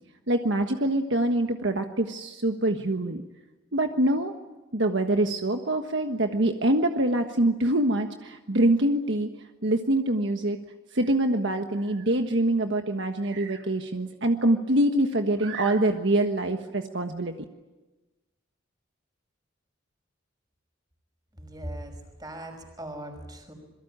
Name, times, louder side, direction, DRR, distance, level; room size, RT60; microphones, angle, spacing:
voice 1, 0.3-3.2 3.7-4.3 4.7-9.3 9.6-10.6 10.9-17.3, right 1 dB, 60° right, 5 dB, 1.4 m, -25 dB
voice 2, 21.3-23.5, right 1 dB, 20° right, 5 dB, 5.7 m, -39 dB
27.0 x 23.0 x 8.8 m, 1.1 s
head